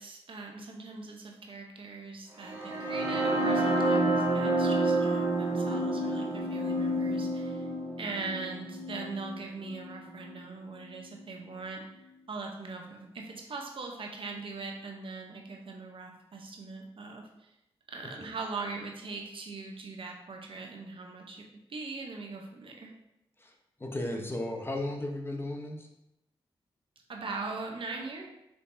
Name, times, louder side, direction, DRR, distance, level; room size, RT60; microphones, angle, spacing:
voice 1, 0.0-7.7 8.0-11.8 12.3-17.5 17.9-21.4 21.7-22.9 27.1-28.3, right 3 dB, 60° right, 1 dB, 0.8 m, -41 dB
sound 1, 2.4-10.3, right 1 dB, 80° right, 1.4 m, -29 dB
voice 2, 23.8-25.9, left 1 dB, 20° left, 2 dB, 0.8 m, -35 dB
4.6 x 3.2 x 2.7 m, 0.86 s
cardioid pair, 50°, 10 cm